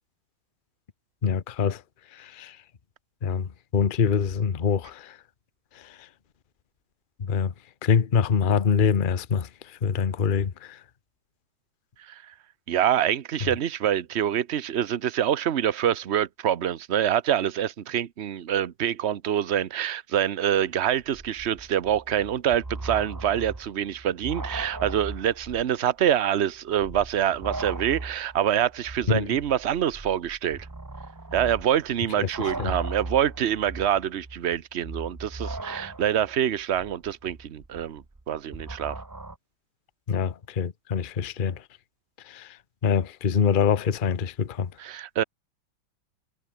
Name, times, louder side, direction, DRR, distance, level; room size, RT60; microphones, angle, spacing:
voice 1, 1.2-1.8 2.1-2.6 3.2-5.2 5.8-6.0 7.3-7.5 7.8-10.8 29.1-29.3 32.2-32.7 40.1-41.6 42.3-42.6 42.8-44.7, left 6 dB, 35° left, 0.8 m, -25 dB
voice 2, 12.7-30.7 31.3-39.0 44.8-45.2, right 10 dB, 50° right, 0.8 m, -26 dB
sound 1, 21.0-25.8 26.1-26.2 26.7-39.4, right 2 dB, 20° right, 0.5 m, -38 dB
omnidirectional pair, 2.2 m